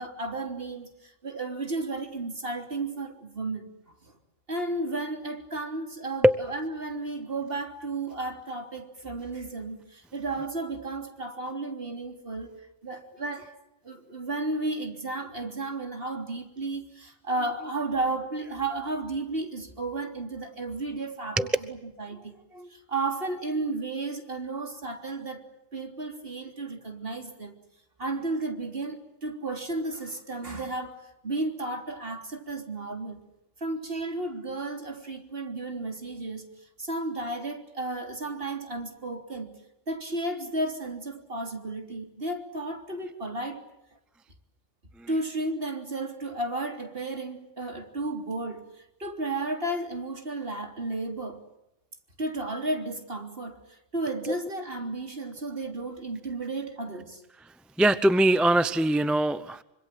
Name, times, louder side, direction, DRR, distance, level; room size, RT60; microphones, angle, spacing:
voice 1, 0.0-3.7 4.0-4.1 4.5-12.5 12.8-13.5 13.8-25.5 25.7-27.5 28.0-33.2 33.6-36.5 36.8-39.5 39.9-43.6 45.1-51.4 52.2-57.2, right 2 dB, 50° right, 4 dB, 3.6 m, -33 dB
voice 2, 57.8-59.6, right 1 dB, ahead, 13 dB, 0.7 m, -21 dB
25.5 x 25.5 x 7.7 m, 0.87 s
omnidirectional pair, 1.3 m